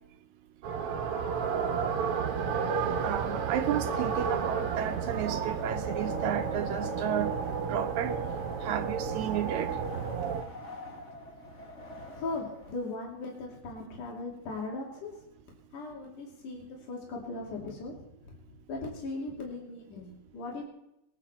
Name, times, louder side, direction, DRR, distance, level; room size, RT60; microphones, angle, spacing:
sound 1, 0.6-10.4, right 6 dB, 55° right, 1.9 m, -32 dB
Wind, 2.4-12.7, left 2 dB, 30° left, 1.5 m, -44 dB
voice 1, 3.0-7.4 7.7-8.2 8.6-9.7, right 10 dB, 75° right, 1.9 m, -32 dB
voice 2, 12.1-15.1 15.7-18.1 18.7-20.7, left 3 dB, 75° left, 4.1 m, -38 dB
21.0 x 10.0 x 4.4 m
omnidirectional pair, 3.6 m